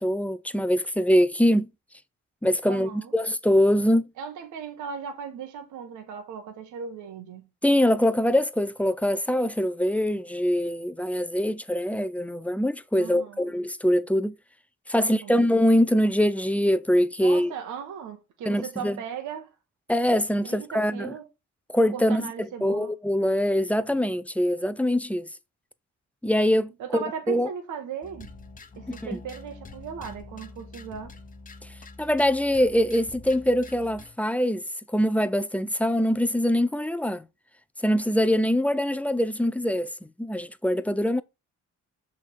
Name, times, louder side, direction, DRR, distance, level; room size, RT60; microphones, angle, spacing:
voice 1, 0.0-1.7 2.4-4.1 7.6-14.3 14.9-17.5 18.5-19.0 19.9-21.1 21.7-25.3 26.2-27.5 29.0-29.2 32.0-34.6 34.9-37.2 37.8-39.9 40.2-41.2, equal, 5° left, 0.4 m, -23 dB
voice 2, 2.6-3.1 4.2-7.5 13.0-13.4 15.0-15.4 17.2-19.5 20.4-21.3 21.9-22.9 26.8-28.3 28.8-31.1, right 7 dB, 80° right, 1.2 m, -37 dB
sound 1, 28.0-34.2, left 3 dB, 25° left, 1.0 m, -45 dB
6.5 x 3.7 x 4.5 m
cardioid pair, 90°, 30 cm